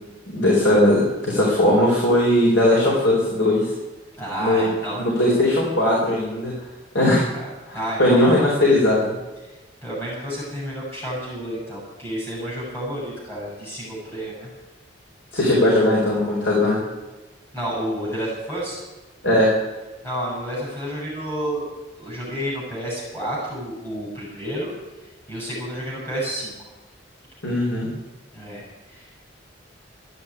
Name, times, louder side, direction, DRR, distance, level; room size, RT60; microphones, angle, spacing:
voice 1, 0.3-3.7 4.4-4.7 5.2-6.5 6.9-7.2 7.7-9.1 15.3-16.8 19.2-19.5 27.4-27.9, left 1 dB, 70° left, -4 dB, 4.6 m, -18 dB
voice 2, 4.2-5.0 7.3-8.5 9.4-14.5 17.5-18.8 20.0-21.7 22.0-24.7 25.3-26.6 28.3-29.2, equal, 10° left, -6 dB, 7.5 m, -30 dB
14.0 x 9.9 x 9.7 m, 1.2 s
head